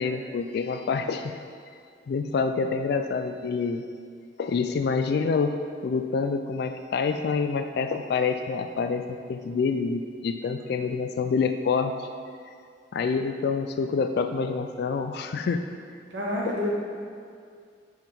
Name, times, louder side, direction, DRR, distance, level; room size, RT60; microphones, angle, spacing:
voice 1, 0.0-1.3 2.1-3.8 4.4-5.5 5.8-12.1 12.9-15.6 16.5-16.7, left 5 dB, 60° left, 7 dB, 0.3 m, -27 dB
voice 2, 16.1-16.7, left 1 dB, 85° right, -4 dB, 1.5 m, -28 dB
5.4 x 4.6 x 5.3 m, 2.2 s
head